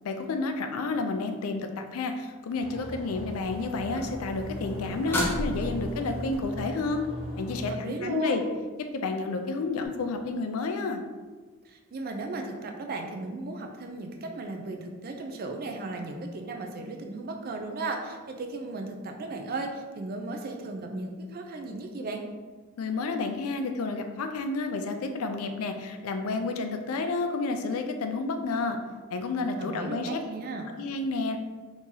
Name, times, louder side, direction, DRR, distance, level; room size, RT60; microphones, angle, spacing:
voice 1, 0.0-7.0 7.4-8.4 8.9-11.0 22.8-28.8 29.1-30.2 30.8-31.4, left 3 dB, 80° left, 6 dB, 0.4 m, -30 dB
sound 1, 2.6-7.7, equal, 25° right, 1.0 m, -39 dB
sound 2, 3.3-6.4 9.8-9.9, equal, 10° left, 0.8 m, -34 dB
voice 2, 7.7-8.4 11.6-22.2 29.6-30.6, right 2 dB, 45° right, 3 dB, 0.4 m, -35 dB
2.9 x 2.7 x 3.7 m, 1.4 s
head